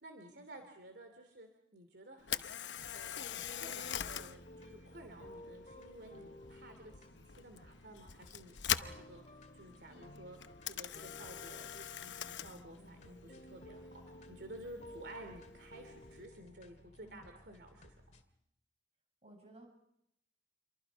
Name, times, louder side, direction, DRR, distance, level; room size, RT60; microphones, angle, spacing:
voice 1, 0.0-10.4 10.6-13.9 14.3-18.0, right 1 dB, 70° right, 6 dB, 2.8 m, -53 dB
Camera, 2.2-16.3, left 10 dB, 85° left, 0.9 m, -44 dB
sound 1, 2.7-18.2, left 1 dB, 40° left, 2.2 m, -56 dB
voice 2, 17.0-17.3 19.2-19.7, right 1 dB, 35° right, 3 dB, 7.9 m, -57 dB
29.0 x 24.0 x 5.2 m, 0.77 s
head